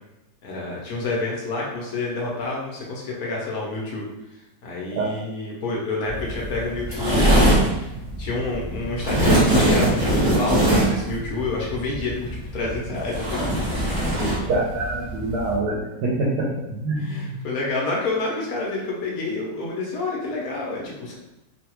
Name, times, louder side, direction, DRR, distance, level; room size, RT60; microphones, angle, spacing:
voice 1, 0.4-4.1 4.3-7.9 8.2-14.3 17.0-21.1, left 2 dB, 65° left, -3 dB, 1.1 m, -29 dB
sound 1, 6.1-15.6, right 1 dB, 20° right, 0.7 m, -22 dB
voice 2, 14.5-17.3, right 2 dB, 75° right, -5 dB, 1.2 m, -25 dB
3.1 x 2.3 x 2.9 m, 0.94 s
omnidirectional pair, 1.8 m